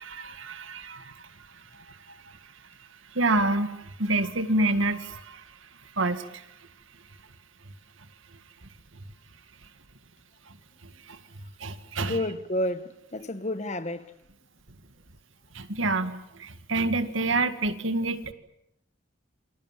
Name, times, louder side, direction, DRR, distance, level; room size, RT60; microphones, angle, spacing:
voice 1, 0.0-1.3 1.7-2.2 3.1-5.4 6.0-6.5 11.1-11.2 11.6-12.2 15.5-18.3, right 2 dB, 75° right, 2.0 m, -28 dB
voice 2, 12.0-14.1, left 1 dB, 35° left, 1.3 m, -30 dB
28.5 x 26.0 x 7.4 m
head